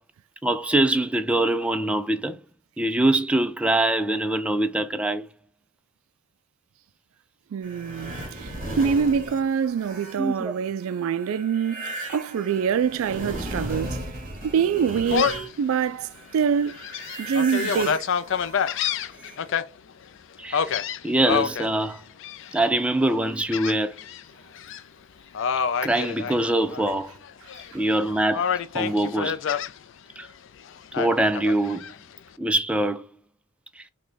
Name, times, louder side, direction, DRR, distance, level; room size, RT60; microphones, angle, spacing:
voice 1, 0.4-2.4 2.8-5.3 10.2-10.5 20.4-20.8 21.0-22.0 22.5-23.9 25.8-27.1 27.7-29.4 30.2-30.3 31.0-31.9 32.4-33.1 33.8-33.9, right 1 dB, 5° right, 0.3 m, -23 dB
voice 2, 7.5-14.0 14.4-16.8 17.2-18.1 27.7-27.8, right 7 dB, 80° right, 0.3 m, -25 dB
sound 1, 7.6-15.9 16.2-19.5, right 1 dB, 40° right, 2.3 m, -36 dB
Gull seagull, 15.1-15.5 16.0-16.1 16.7-19.6 20.5-21.7 22.2-22.7 23.5-24.2 24.5-24.8 25.3-26.9 27.2-28.0 28.3-29.7 30.9-31.9, left 7 dB, 60° left, 0.4 m, -27 dB
6.1 x 2.2 x 3.8 m
head